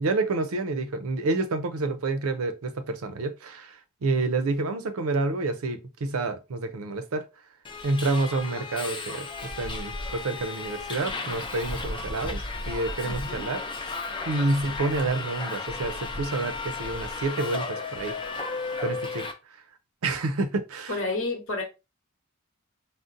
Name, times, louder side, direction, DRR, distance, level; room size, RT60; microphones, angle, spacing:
voice 1, 0.0-7.3 7.8-13.6 14.3-18.1 18.8-19.3 20.0-20.9, right 3 dB, 85° right, 0.5 m, -28 dB
Subway metro underground, 7.6-19.3, left 3 dB, 25° left, 0.4 m, -34 dB
voice 2, 13.0-13.5 20.9-21.6, left 2 dB, 65° left, 1.0 m, -30 dB
3.7 x 2.1 x 2.6 m
head